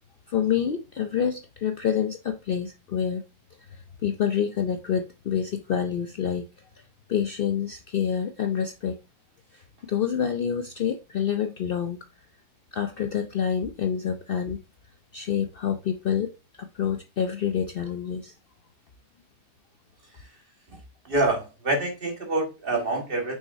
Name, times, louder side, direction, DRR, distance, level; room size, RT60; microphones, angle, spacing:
voice 1, 0.3-3.2 4.0-6.5 7.1-9.0 9.8-12.0 12.7-14.6 15.1-16.3 16.6-18.3, left 8 dB, 85° left, 0.5 m, -27 dB
voice 2, 21.0-23.4, right 2 dB, 35° right, 1.7 m, -26 dB
6.1 x 6.1 x 2.6 m
omnidirectional pair, 1.7 m